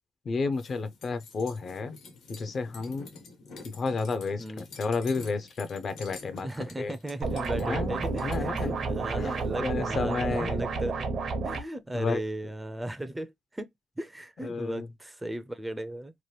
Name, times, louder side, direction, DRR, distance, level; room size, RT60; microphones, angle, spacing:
voice 1, 0.3-2.0 2.3-3.1 3.6-6.5 6.8-6.9 7.6-8.8 9.2-10.6 11.9-12.2 14.4-14.9, left 4 dB, 50° left, 0.5 m, -31 dB
sound 1, 0.5-10.0, left 4 dB, 80° left, 1.1 m, -49 dB
voice 2, 6.4-11.1 11.4-13.7 14.0-16.1, right 1 dB, 10° right, 0.4 m, -36 dB
sound 2, 7.2-11.6, right 4 dB, 60° right, 0.7 m, -30 dB
2.9 x 2.2 x 3.1 m
cardioid pair, 90°, 0 cm